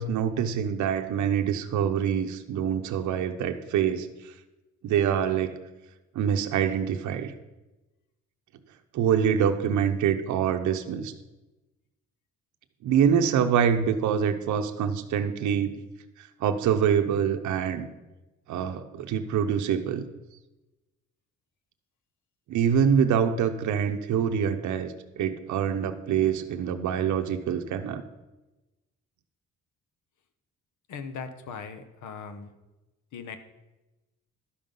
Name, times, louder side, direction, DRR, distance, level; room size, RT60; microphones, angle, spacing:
voice 1, 0.0-4.3 4.8-5.5 6.1-7.3 8.9-11.1 12.8-15.7 16.2-17.9 18.5-20.0 22.5-28.0, right 8 dB, 70° right, 6 dB, 0.7 m, -25 dB
voice 2, 30.9-32.5 33.1-33.4, left 5 dB, 75° left, 10 dB, 1.0 m, -39 dB
11.5 x 5.5 x 5.3 m, 1.0 s
cardioid pair, 90°, 30 cm